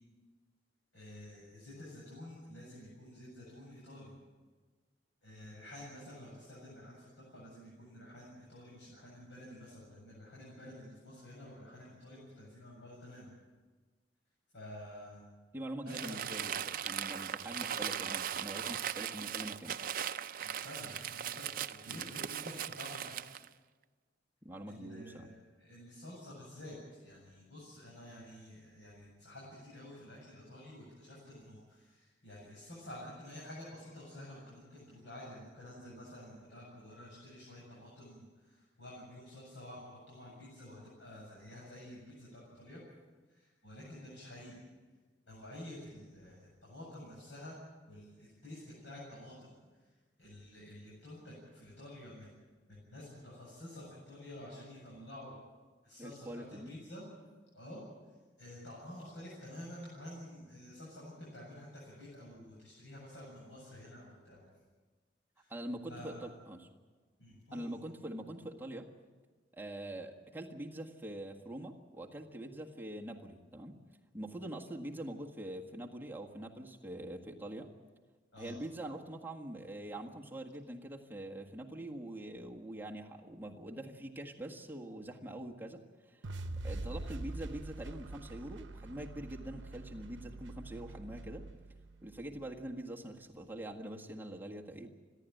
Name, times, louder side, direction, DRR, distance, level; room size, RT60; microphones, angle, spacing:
voice 1, 0.9-4.1 5.2-13.3 14.5-15.2 15.8-16.2 20.4-23.3 24.7-42.8 43.3-44.6 45.3-47.6 47.9-49.5 50.2-52.3 52.7-55.3 55.8-57.0 57.5-57.8 58.4-64.5 65.4-65.5 65.9-66.3 67.2-67.7 78.3-78.6, left 1 dB, 80° left, -6 dB, 7.7 m, -50 dB
voice 2, 15.5-19.8 21.9-22.1 24.4-25.3 56.0-56.7 65.5-66.7 67.5-68.9 69.5-73.7 74.1-77.7 78.4-86.3 86.6-91.4 92.0-94.9, right 1 dB, 10° right, -1 dB, 1.7 m, -44 dB
Crumpling crinkling, 15.9-23.5, right 9 dB, 50° right, 0.6 m, -39 dB
sound 1, 86.2-92.4, right 2 dB, 85° right, 0.8 m, -44 dB
29.5 x 11.5 x 9.2 m, 1.4 s
head